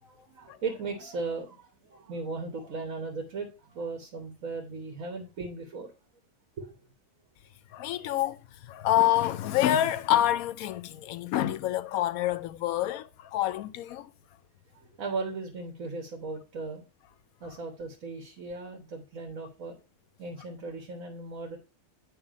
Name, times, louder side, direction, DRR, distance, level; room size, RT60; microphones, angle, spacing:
voice 1, 0.0-5.9 6.6-6.8 8.0-8.1 14.7-16.8 17.4-19.8 20.2-21.6, right 3 dB, 75° right, 1.5 m, -37 dB
voice 2, 7.7-14.1, left 13 dB, 90° left, 1.0 m, -27 dB
9.0 x 3.3 x 5.0 m
omnidirectional pair, 1.4 m